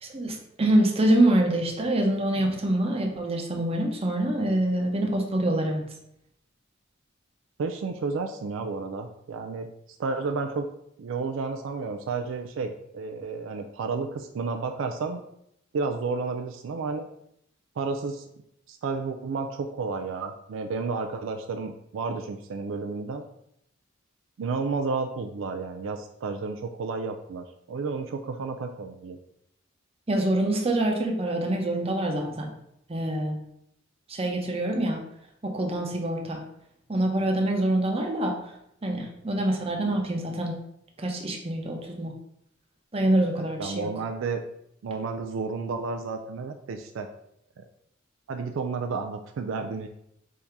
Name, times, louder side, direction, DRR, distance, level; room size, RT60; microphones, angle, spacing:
voice 1, 0.0-5.8 30.1-32.5 32.9-33.4 34.1-35.0 35.4-36.4 36.9-38.3 38.8-40.5 41.0-42.1 42.9-43.9, right 1 dB, 30° right, 1 dB, 0.7 m, -25 dB
voice 2, 7.6-9.7 10.0-10.7 11.0-15.2 15.7-17.1 17.8-18.3 18.7-23.2 24.4-29.2 43.6-44.4 44.8-47.1 47.6-47.7 48.3-49.9, right 4 dB, 70° right, 5 dB, 0.3 m, -31 dB
3.6 x 2.7 x 4.4 m, 0.77 s
head